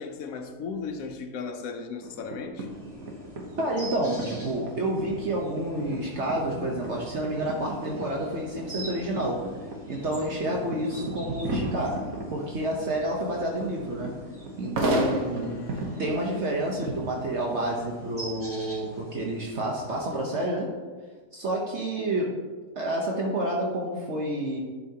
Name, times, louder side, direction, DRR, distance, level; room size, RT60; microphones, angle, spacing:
voice 1, 0.0-2.7 15.2-16.1, left 5 dB, 85° left, 5 dB, 1.1 m, -37 dB
sound 1, 2.0-18.4, right 2 dB, 90° right, 1.5 m, -36 dB
sound 2, 2.6-20.2, right 1 dB, 35° right, 2.8 m, -45 dB
voice 2, 3.6-9.5 9.9-14.2 14.6-15.6 16.0-20.7 21.3-22.4 22.7-24.6, right 1 dB, 60° right, -1 dB, 1.1 m, -29 dB
11.0 x 5.6 x 2.8 m, 1.4 s
omnidirectional pair, 1.4 m